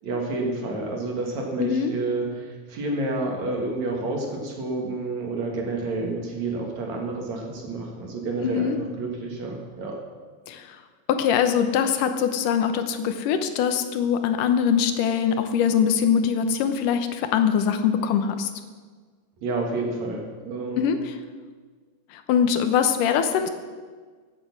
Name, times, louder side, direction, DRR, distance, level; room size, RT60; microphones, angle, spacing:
voice 1, 0.0-10.0 19.4-20.8, right 2 dB, 60° right, 1 dB, 3.3 m, -29 dB
voice 2, 1.6-1.9 8.4-8.8 10.5-10.7 11.1-18.5 20.8-21.0 22.1-23.5, left 7 dB, 90° left, 8 dB, 2.5 m, -22 dB
15.5 x 8.9 x 6.0 m, 1.5 s
omnidirectional pair, 3.7 m